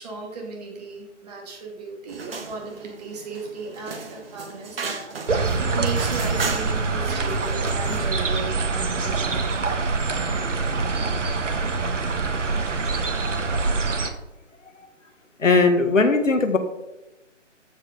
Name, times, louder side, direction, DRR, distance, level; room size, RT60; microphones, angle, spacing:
voice 1, 0.0-9.4, right 4 dB, 30° right, 0 dB, 2.6 m, -36 dB
sound 1, 2.1-8.2, right 4 dB, 50° right, 1.7 m, -36 dB
sound 2, 5.3-14.1, right 3 dB, 70° right, 1.5 m, -25 dB
voice 2, 15.4-16.6, left 3 dB, 80° left, 6 dB, 1.8 m, -19 dB
14.0 x 5.2 x 5.2 m, 1.0 s
figure-of-eight pair, 160°, 38 cm